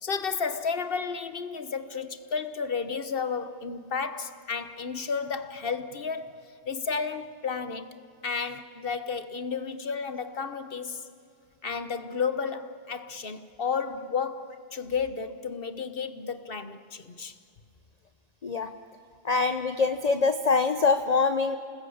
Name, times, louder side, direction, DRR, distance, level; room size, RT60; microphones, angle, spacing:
voice 1, 0.0-7.9 8.2-11.0 11.6-17.3, left 5 dB, 55° left, 11 dB, 1.3 m, -32 dB
voice 2, 19.2-21.6, left 4 dB, 40° left, 9 dB, 0.8 m, -24 dB
28.5 x 19.5 x 8.6 m, 2.5 s
omnidirectional pair, 1.2 m